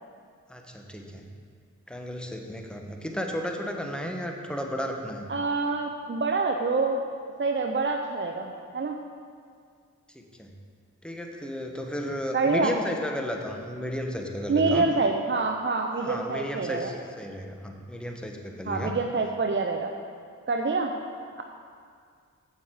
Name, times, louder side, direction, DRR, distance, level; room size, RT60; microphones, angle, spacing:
voice 1, 0.5-1.3 1.9-5.3 10.1-10.5 11.0-14.9 16.0-18.9, equal, 5° left, 2 dB, 1.2 m, -34 dB
voice 2, 5.3-7.1 7.4-9.0 12.3-12.7 14.5-16.9 18.7-19.9 20.5-20.9, right 3 dB, 35° right, 3 dB, 0.6 m, -26 dB
8.0 x 7.3 x 4.9 m, 2.1 s
cardioid pair, 45°, 33 cm